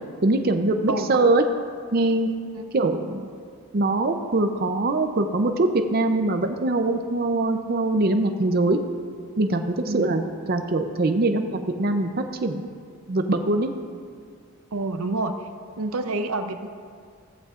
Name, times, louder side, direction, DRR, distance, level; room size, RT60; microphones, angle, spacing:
voice 1, 0.2-1.4 1.9-2.3 2.7-3.3 3.7-8.8 9.4-10.2 10.5-12.6 13.1-13.7, right 2 dB, 45° right, 6 dB, 0.6 m, -22 dB
voice 2, 14.7-15.3 15.8-16.7, right 2 dB, 85° right, 8 dB, 0.7 m, -28 dB
15.0 x 14.5 x 2.5 m, 2.2 s
head